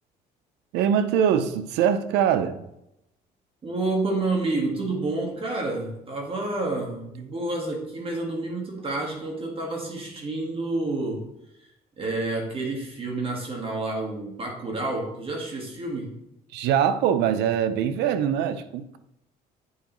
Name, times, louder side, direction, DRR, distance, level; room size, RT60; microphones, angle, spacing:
voice 1, 0.7-2.6 16.5-19.0, right 9 dB, 85° right, 0.6 m, -23 dB
voice 2, 3.6-11.3 12.0-16.1, right 2 dB, 35° right, 1.6 m, -29 dB
9.4 x 4.8 x 3.0 m
cardioid pair, 110°, 17 cm